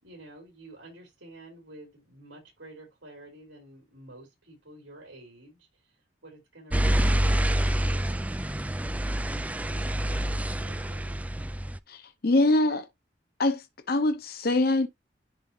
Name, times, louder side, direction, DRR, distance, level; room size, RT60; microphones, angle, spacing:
voice 1, 0.0-5.9 6.2-8.3 9.0-9.4 9.7-11.2, right 1 dB, 85° right, 5.4 m, -50 dB
sound 1, 6.7-11.8, right 1 dB, 10° right, 0.3 m, -27 dB
voice 2, 11.9-12.9 13.4-14.9, left 2 dB, 55° left, 0.8 m, -24 dB
11.0 x 3.6 x 3.2 m
head